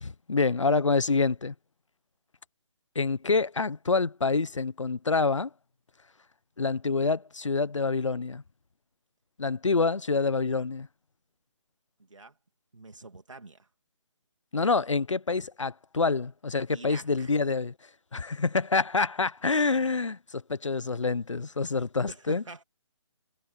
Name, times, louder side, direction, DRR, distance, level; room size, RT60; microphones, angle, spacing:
voice 1, 0.0-1.5 2.9-5.5 6.6-8.4 9.4-10.9 14.5-17.7 18.1-22.4, left 4 dB, 80° left, 1.0 m, -27 dB
voice 2, 12.7-13.7 16.7-17.3 22.1-22.6, right 3 dB, 85° right, 2.6 m, -45 dB
figure-of-eight pair, 150°, 16 cm